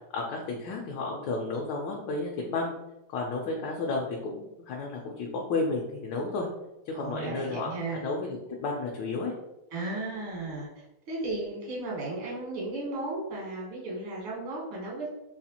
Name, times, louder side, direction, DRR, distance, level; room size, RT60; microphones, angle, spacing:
voice 1, 0.1-2.7 3.1-6.5 6.9-7.7 8.0-9.3, left 3 dB, 75° left, -1 dB, 1.2 m, -32 dB
voice 2, 6.9-8.0 9.7-10.7 11.1-15.1, right 2 dB, 90° right, -3 dB, 2.1 m, -35 dB
4.1 x 2.4 x 2.8 m, 0.90 s
omnidirectional pair, 2.3 m